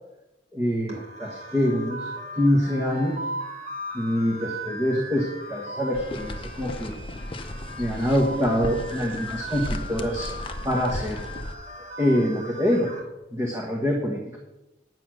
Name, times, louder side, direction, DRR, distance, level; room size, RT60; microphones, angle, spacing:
voice 1, 0.5-3.2 3.9-6.9 7.8-10.3 10.6-11.3 12.0-12.9 13.3-14.4, equal, 15° right, -1 dB, 1.5 m, -25 dB
sound 1, 0.9-13.0, right 1 dB, 35° right, 3.2 m, -38 dB
sound 2, 5.9-11.5, left 1 dB, 30° left, 0.7 m, -35 dB
9.8 x 7.7 x 6.4 m, 0.98 s
head